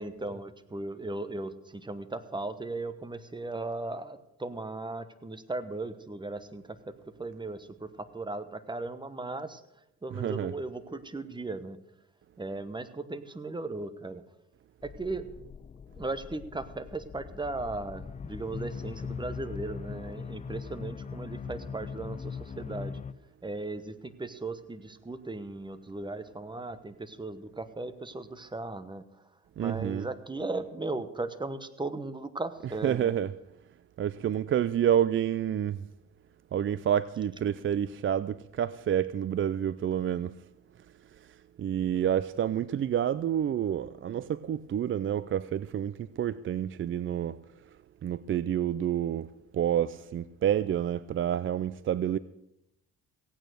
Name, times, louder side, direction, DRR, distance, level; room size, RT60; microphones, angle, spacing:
voice 1, 0.0-11.8 12.4-14.2 14.8-15.3 16.0-23.0 23.4-29.3 29.6-33.2, right 2 dB, 15° right, 1.1 m, -37 dB
voice 2, 10.1-10.5 29.6-30.1 32.8-33.3 34.0-35.8 36.5-40.3 41.6-47.4 48.0-52.2, right 10 dB, 45° right, 0.4 m, -29 dB
sound 1, 14.8-23.1, left 6 dB, 25° left, 0.4 m, -41 dB
16.0 x 9.0 x 6.4 m
cardioid pair, 90°, 30 cm